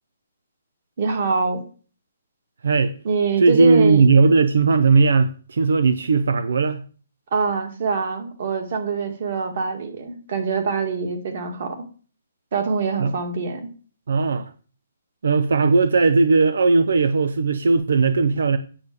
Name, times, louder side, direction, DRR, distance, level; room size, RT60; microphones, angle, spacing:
voice 1, 1.0-1.6 3.0-4.0 7.3-11.8 12.5-13.7, right 5 dB, 35° right, 2.1 m, -24 dB
voice 2, 2.6-2.9 3.4-6.8 13.0-13.1 14.1-14.5 15.2-18.6, right 4 dB, 65° right, 0.8 m, -17 dB
8.8 x 6.7 x 8.7 m
hypercardioid pair, 180°, 0 cm